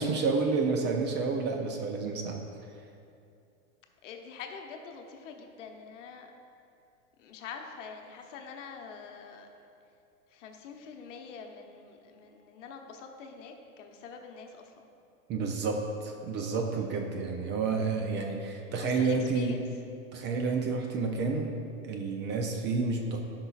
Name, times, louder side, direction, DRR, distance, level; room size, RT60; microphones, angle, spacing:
voice 1, 0.0-2.5 15.3-19.6 20.1-21.6 21.8-23.2, right 4 dB, 25° right, 2 dB, 0.6 m, -30 dB
voice 2, 4.0-6.3 7.2-9.7 10.3-14.9 18.5-19.6, left 5 dB, 65° left, 3 dB, 0.9 m, -45 dB
12.5 x 5.6 x 2.4 m, 2.6 s
hypercardioid pair, 120°, 41 cm